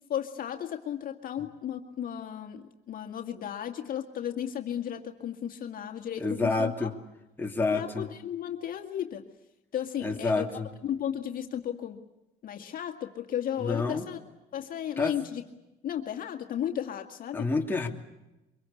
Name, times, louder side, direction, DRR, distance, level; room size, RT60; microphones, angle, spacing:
voice 1, 0.1-6.9 7.7-9.2 9.7-10.4 10.8-12.0 12.4-14.2 14.5-15.4 15.8-17.5, left 10 dB, 55° left, 4 dB, 2.0 m, -34 dB
voice 2, 6.2-6.9 7.4-8.1 10.0-10.7 13.6-14.1 15.0-15.2 17.3-17.9, left 3 dB, 10° left, 0 dB, 2.7 m, -28 dB
24.0 x 22.5 x 8.5 m, 0.95 s
cardioid pair, 110°, 17 cm